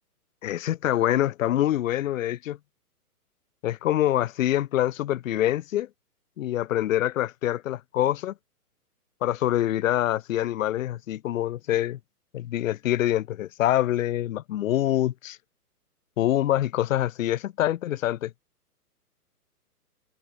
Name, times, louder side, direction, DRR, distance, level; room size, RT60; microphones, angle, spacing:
voice 1, 0.4-2.6 3.6-5.9 6.4-8.3 9.2-12.0 12.3-15.4 16.2-18.3, left 13 dB, 60° left, 0.5 m, -25 dB
hypercardioid pair, 140°, 46 cm